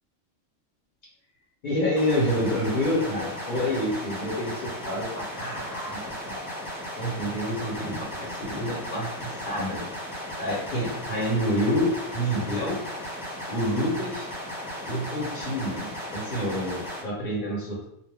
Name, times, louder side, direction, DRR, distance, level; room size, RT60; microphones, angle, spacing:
voice 1, 1.6-6.4 7.0-9.9 10.4-12.8 13.5-14.3 14.9-17.8, equal, 45° left, -6 dB, 0.9 m, -28 dB
sound 1, 2.0-17.0, equal, 5° right, 0.3 m, -36 dB
2.2 x 2.1 x 3.3 m, 0.76 s
omnidirectional pair, 1.3 m